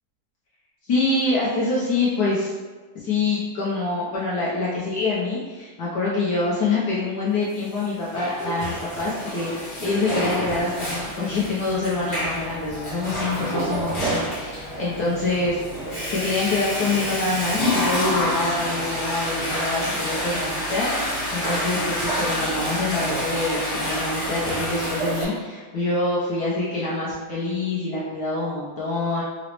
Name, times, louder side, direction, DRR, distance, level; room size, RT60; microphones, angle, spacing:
voice 1, 0.9-2.5 2.9-15.6 16.1-29.2, left 3 dB, 70° left, -7 dB, 0.9 m, -25 dB
Water / Toilet flush, 7.8-25.2, equal, 40° left, 0.7 m, -28 dB
3.8 x 2.0 x 2.9 m, 1.4 s
omnidirectional pair, 2.3 m